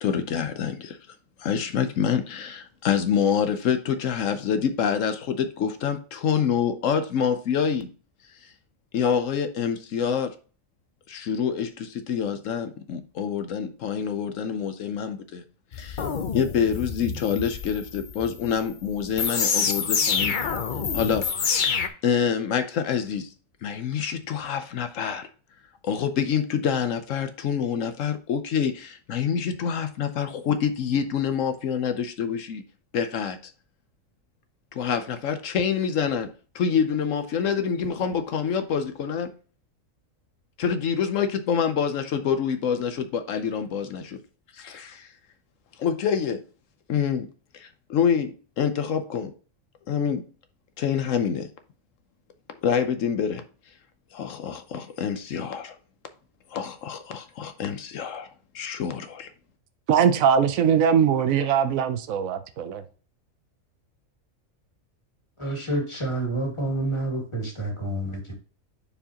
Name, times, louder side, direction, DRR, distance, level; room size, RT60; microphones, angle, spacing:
voice 1, 0.0-1.0 1.4-7.9 8.4-8.5 8.9-10.3 11.1-15.4 15.7-16.0 16.3-20.3 20.9-21.8 22.0-23.3 23.6-25.3 25.8-32.6 32.9-33.4 34.7-39.3 40.6-44.2 44.5-45.1 45.8-46.4 46.9-47.3 47.5-49.3 49.9-50.2 50.8-51.5 52.6-53.4 54.1-55.8 56.5-58.3 58.5-59.3, left 7 dB, 75° left, 1.1 m, -26 dB
sound 1, 15.7-21.9, left 6 dB, 45° left, 0.7 m, -27 dB
voice 2, 59.9-62.8, right 7 dB, 85° right, 1.1 m, -21 dB
voice 3, 65.4-68.3, right 2 dB, 20° left, 2.3 m, -28 dB
10.0 x 4.7 x 2.9 m
omnidirectional pair, 1.4 m